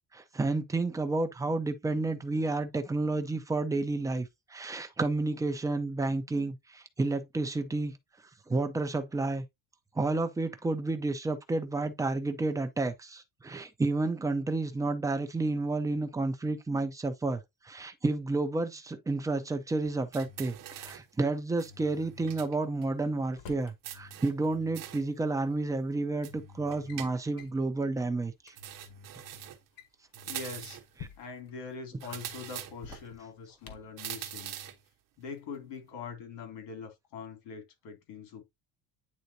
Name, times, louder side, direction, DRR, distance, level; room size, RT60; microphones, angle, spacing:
voice 1, 0.1-8.0 8.5-9.4 9.9-28.5, right 3 dB, 10° right, 0.6 m, -31 dB
Drawer open or close, 19.6-21.0 22.6-23.8 25.1-25.2 26.0-26.3 26.6-27.0 27.4-27.6 28.1-28.2 28.4-28.6 29.6-31.5 32.7-34.0, left 7 dB, 50° left, 1.4 m, -51 dB
sound 1, 20.1-21.1 21.6-22.6 22.8-22.9 23.8-25.1 26.2-27.5 28.6-29.7 30.1-30.9 32.0-33.0 34.0-34.8, right 10 dB, 45° right, 1.1 m, -43 dB
voice 2, 30.2-30.8 31.2-34.6 35.2-38.4, left 5 dB, 70° left, 2.7 m, -43 dB
9.4 x 3.9 x 2.7 m
cardioid pair, 170°, 44 cm